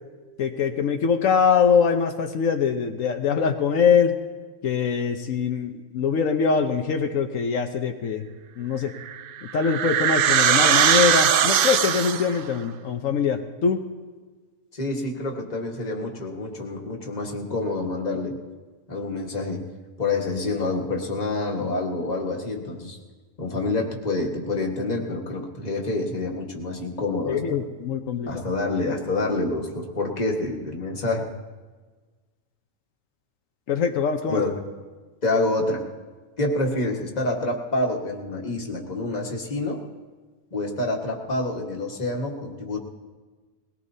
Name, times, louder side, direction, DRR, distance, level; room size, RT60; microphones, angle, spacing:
voice 1, 0.4-4.1 4.6-8.3 8.6-8.9 9.5-13.8 27.3-28.5 33.7-34.4, left 6 dB, 80° left, 5 dB, 1.2 m, -23 dB
sound 1, 9.0-12.4, right 9 dB, 60° right, 0.6 m, -20 dB
voice 2, 14.7-18.4 18.9-19.6 20.0-23.0 23.4-27.6 28.3-31.3 34.3-34.5 35.2-35.8 36.4-39.8 40.5-42.8, left 2 dB, 30° left, 0 dB, 1.6 m, -27 dB
21.0 x 18.0 x 2.7 m, 1.4 s
omnidirectional pair, 1.3 m